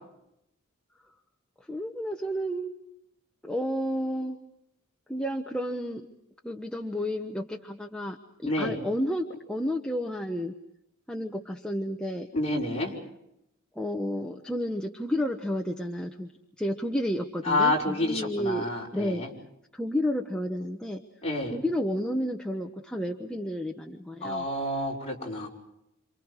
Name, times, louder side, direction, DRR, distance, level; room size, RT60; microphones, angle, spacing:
voice 1, 1.7-2.7 3.4-4.4 5.1-6.1 6.4-10.5 11.1-12.3 13.7-16.3 16.6-19.2 19.7-21.0 21.5-24.5, equal, 5° left, 2 dB, 1.0 m, -31 dB
voice 2, 8.5-8.8 12.3-12.9 17.4-19.3 21.2-21.5 24.2-25.5, left 2 dB, 30° left, -3 dB, 5.4 m, -28 dB
28.5 x 28.0 x 4.8 m, 0.82 s
head